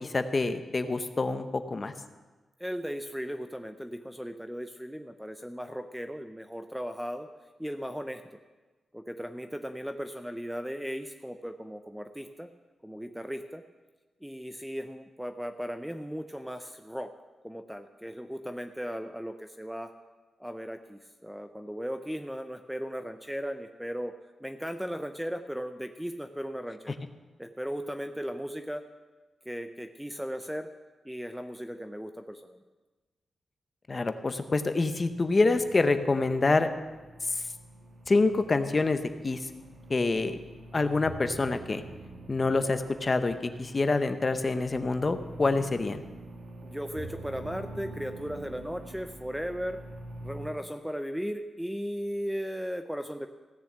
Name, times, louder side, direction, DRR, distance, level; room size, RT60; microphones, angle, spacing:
voice 1, 0.0-1.9 33.9-36.7 38.1-39.4 39.9-40.4 40.7-41.8 42.3-46.0, left 3 dB, 25° left, 9 dB, 0.8 m, -26 dB
voice 2, 2.6-7.3 7.6-8.2 8.9-12.5 12.8-13.6 14.2-17.1 17.4-19.9 20.4-24.1 24.4-27.0 27.4-28.9 29.5-30.7 31.0-32.6 46.6-49.8 50.2-53.3, equal, ahead, 7 dB, 0.5 m, -37 dB
sound 1, 34.8-50.5, right 1 dB, 55° right, 1.9 m, -46 dB
16.0 x 7.0 x 7.5 m, 1.3 s
wide cardioid pair, 155°, 0 cm